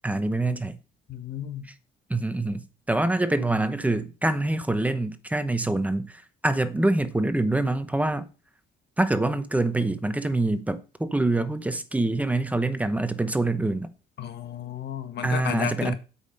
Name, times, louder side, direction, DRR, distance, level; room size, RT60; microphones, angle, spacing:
voice 1, 0.0-0.8 2.1-8.3 9.0-13.9 15.2-16.0, right 2 dB, 5° right, 0.8 m, -25 dB
voice 2, 1.1-1.7 14.2-16.0, left 9 dB, 60° left, 1.5 m, -33 dB
8.3 x 5.4 x 6.5 m
cardioid pair, 135°, 20 cm